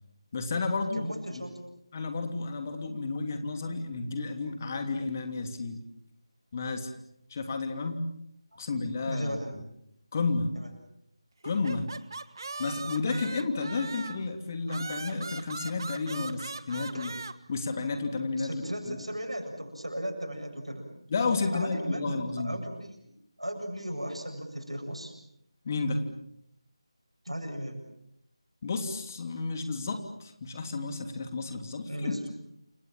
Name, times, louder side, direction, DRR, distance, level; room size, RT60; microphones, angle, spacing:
voice 1, 0.3-1.1 1.9-5.8 6.5-6.9 7.3-8.0 8.6-9.6 10.1-10.5 11.4-11.9 12.6-17.1 17.5-19.0 21.1-22.5 25.6-26.0 28.6-32.1, left 3 dB, 30° left, 6 dB, 3.0 m, -32 dB
voice 2, 0.9-1.6 9.1-9.5 10.5-10.7 16.9-17.0 18.4-20.9 21.4-23.1 23.4-25.1 27.3-27.8 31.8-32.3, equal, 85° right, 4 dB, 7.4 m, -36 dB
sound 1, 11.4-14.3 14.7-17.3, right 3 dB, 45° right, 1.6 m, -40 dB
29.0 x 25.5 x 7.4 m, 0.79 s
figure-of-eight pair, 160°, 3 cm